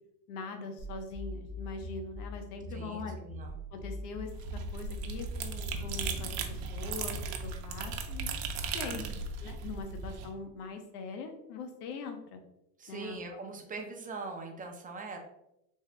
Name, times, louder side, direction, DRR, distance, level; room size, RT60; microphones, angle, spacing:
voice 1, 0.3-3.2 3.7-7.2 7.4-8.4 8.7-9.1 9.4-12.4 12.9-13.4, left 4 dB, 80° left, 5 dB, 0.9 m, -42 dB
sound 1, 0.8-6.3, left 1 dB, 50° left, 1.2 m, -42 dB
voice 2, 2.7-3.6 8.9-9.2 12.8-15.2, right 3 dB, 20° right, 2 dB, 0.6 m, -42 dB
sound 2, 4.2-10.3, right 4 dB, 55° right, 0.7 m, -37 dB
3.5 x 2.7 x 3.3 m, 0.85 s
supercardioid pair, 115°, 46 cm